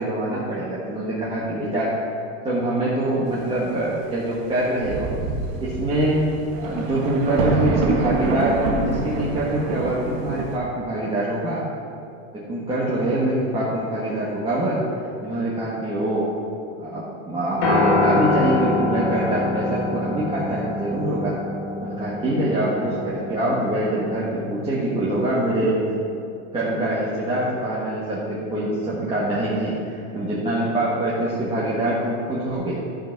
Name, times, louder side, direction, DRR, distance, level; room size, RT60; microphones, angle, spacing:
voice 1, 0.0-1.9 2.4-5.1 5.6-6.2 6.6-11.6 12.3-14.8 15.2-16.3 16.8-21.3 21.8-25.8 26.5-32.8, right 1 dB, 15° right, -8 dB, 1.5 m, -24 dB
Thunder, 4.4-4.5 4.8-10.6, right 4 dB, 65° right, 1.6 m, -27 dB
Piano, 17.6-25.9, left 2 dB, 80° left, 2.2 m, -26 dB
12.5 x 5.6 x 5.8 m, 2.6 s
supercardioid pair, 155°, 36 cm